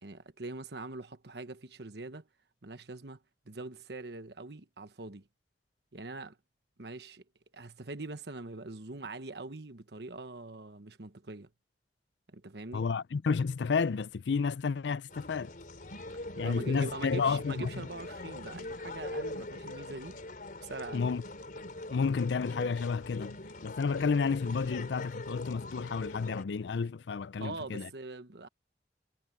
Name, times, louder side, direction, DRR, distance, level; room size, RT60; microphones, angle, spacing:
voice 1, 0.0-2.3 2.6-3.2 3.4-5.3 5.9-6.4 6.8-7.2 7.5-11.5 12.3-12.8 16.3-20.2 20.6-21.1 27.4-28.5, right 2 dB, 65° right, 1.3 m, -43 dB
voice 2, 12.7-15.5 16.4-17.7 20.9-21.2 21.9-27.9, left 5 dB, 80° left, 0.5 m, -31 dB
sound 1, 15.1-26.4, left 2 dB, 50° left, 4.0 m, -42 dB
head